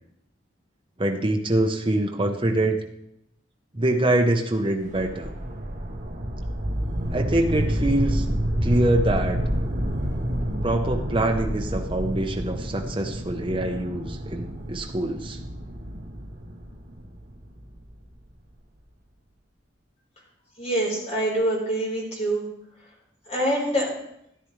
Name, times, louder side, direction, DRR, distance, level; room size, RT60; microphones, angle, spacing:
voice 1, 1.0-2.8 3.7-5.3 7.1-8.2 8.6-9.4 10.6-15.4, right 1 dB, 25° right, 2 dB, 0.8 m, -24 dB
sound 1, 4.8-17.9, equal, 40° right, 1.2 m, -29 dB
voice 2, 20.6-22.4 23.3-23.9, right 1 dB, 35° left, -3 dB, 4.1 m, -25 dB
13.5 x 10.5 x 3.2 m, 0.78 s
head